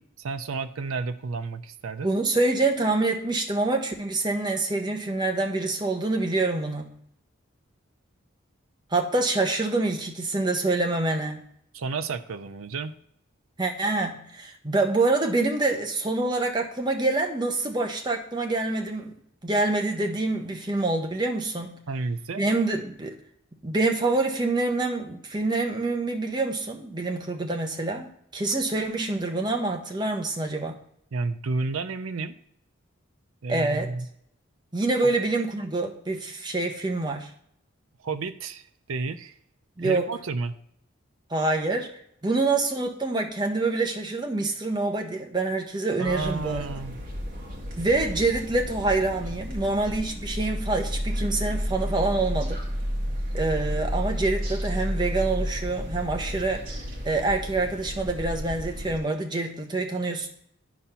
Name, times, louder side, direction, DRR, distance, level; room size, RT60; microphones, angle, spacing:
voice 1, 0.2-2.1 11.7-12.9 21.9-22.4 31.1-32.3 33.4-34.1 35.0-35.1 38.0-38.6 38.9-39.3 39.8-40.5 46.0-47.0, right 4 dB, 80° right, 9 dB, 0.5 m, -31 dB
voice 2, 2.0-6.9 8.9-11.4 13.6-19.1 19.4-21.8 22.4-23.1 23.6-30.8 33.5-33.9 34.7-37.3 39.8-40.1 41.3-41.9 42.2-46.7 47.8-52.6 53.3-56.7 57.0-60.3, right 2 dB, 20° right, 3 dB, 1.0 m, -26 dB
sound 1, 46.0-59.0, equal, 40° right, 1.8 m, -32 dB
10.0 x 4.2 x 5.6 m, 0.70 s
head